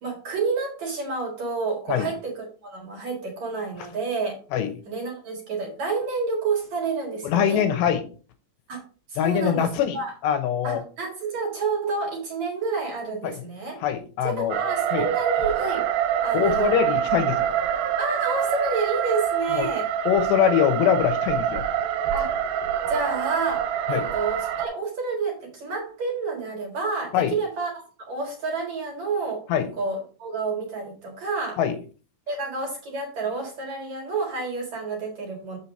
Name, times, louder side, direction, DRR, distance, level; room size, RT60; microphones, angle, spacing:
voice 1, 0.0-4.4 4.9-7.6 8.7-8.8 9.1-9.7 9.9-10.1 10.6-13.8 14.2-15.9 16.2-16.8 18.0-19.9 22.1-22.3 22.9-29.4 29.8-31.6 32.3-35.6, right 4 dB, 50° right, 0 dB, 2.5 m, -29 dB
voice 2, 7.2-8.0 9.2-10.0 10.2-10.8 13.2-13.4 13.8-14.6 14.9-15.1 16.3-17.5 19.5-19.7 20.1-21.7 23.9-24.1 27.1-27.3 29.5-29.7 31.6-31.8, left 9 dB, 80° left, 8 dB, 2.9 m, -23 dB
sound 1, 14.5-24.7, right 9 dB, 80° right, 2.6 m, -26 dB
7.3 x 6.4 x 4.2 m, 0.38 s
omnidirectional pair, 5.1 m